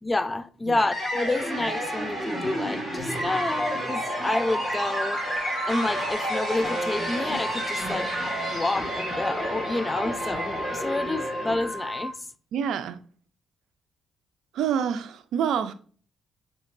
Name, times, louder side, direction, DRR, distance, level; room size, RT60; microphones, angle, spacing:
voice 1, 0.0-5.2 5.7-8.1 8.5-12.1, left 2 dB, 20° left, 0.3 m, -29 dB
sound 1, 0.9-12.1, right 1 dB, 5° right, 1.7 m, -30 dB
Wind instrument woodwind instrument, 3.1-12.1, left 1 dB, 45° left, 1.4 m, -36 dB
voice 2, 12.5-13.0 14.5-15.7, right 8 dB, 80° right, 0.4 m, -27 dB
6.2 x 2.9 x 2.5 m
cardioid pair, 90°, 0 cm